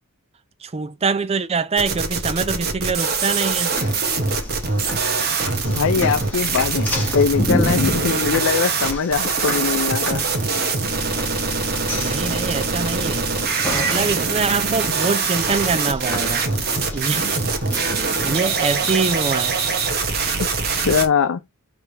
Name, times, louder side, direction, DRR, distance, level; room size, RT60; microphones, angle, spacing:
voice 1, 0.6-3.7 11.9-13.3 13.7-16.5 16.9-17.3 18.0-19.6, right 4 dB, 30° right, 0.4 m, -24 dB
sound 1, 1.8-21.1, right 4 dB, 45° right, 1.1 m, -23 dB
sound 2, 3.5-19.2, left 1 dB, 10° left, 1.9 m, -31 dB
voice 2, 5.7-10.2 20.7-21.4, left 6 dB, 65° left, 0.5 m, -21 dB
4.8 x 3.4 x 2.9 m
head